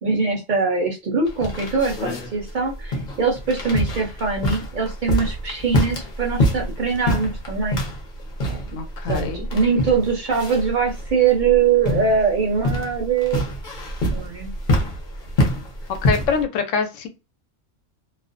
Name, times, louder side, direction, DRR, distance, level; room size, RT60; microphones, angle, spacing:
voice 1, 0.0-7.8 8.5-8.8 9.1-13.4 14.1-14.5, right 5 dB, 50° right, 0 dB, 0.6 m, -22 dB
sound 1, 1.3-16.4, left 1 dB, 45° left, 0.8 m, -26 dB
voice 2, 8.7-9.5 16.0-17.1, left 6 dB, 85° left, 7 dB, 1.0 m, -24 dB
2.4 x 2.1 x 2.5 m, 0.29 s
omnidirectional pair, 1.3 m